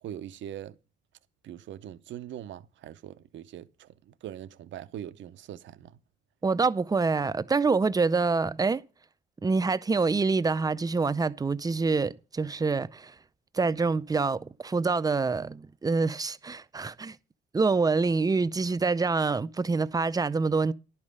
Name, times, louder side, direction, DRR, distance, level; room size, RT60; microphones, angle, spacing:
voice 1, 0.0-0.7 1.4-6.0, right 11 dB, 70° right, 0.7 m, -42 dB
voice 2, 6.4-8.8 9.4-13.1 13.5-17.2 17.5-20.7, right 4 dB, 20° right, 0.5 m, -26 dB
11.0 x 5.4 x 6.5 m
cardioid pair, 90°, 20 cm